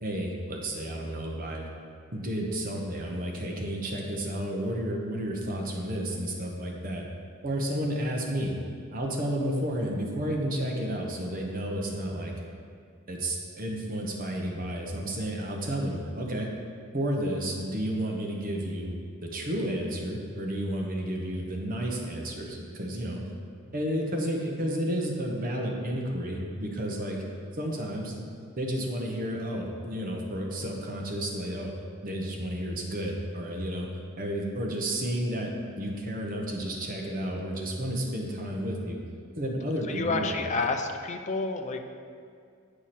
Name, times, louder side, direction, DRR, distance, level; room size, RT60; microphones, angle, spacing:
voice 1, 0.0-1.7 2.1-7.0 7.4-8.5 8.9-12.3 13.1-16.5 16.9-18.9 19.2-23.2 23.7-27.2 27.5-28.2 28.6-31.7 32.0-33.9 34.2-35.5 35.8-39.0 39.3-40.3, right 1 dB, 45° right, 0 dB, 1.0 m, -31 dB
voice 2, 39.9-41.8, left 3 dB, 35° left, 5 dB, 0.5 m, -29 dB
8.8 x 4.8 x 4.3 m, 2.2 s
head